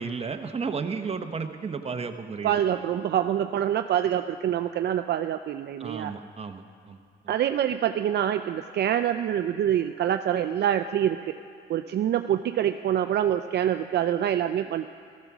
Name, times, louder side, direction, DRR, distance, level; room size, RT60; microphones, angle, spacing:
voice 1, 0.0-2.5 5.8-7.0, right 5 dB, 30° right, 6 dB, 1.0 m, -33 dB
voice 2, 2.4-6.1 7.3-11.3 11.7-14.9, right 10 dB, 55° right, 8 dB, 0.5 m, -26 dB
15.0 x 14.0 x 6.1 m, 2.4 s
cardioid pair, 90°, 20 cm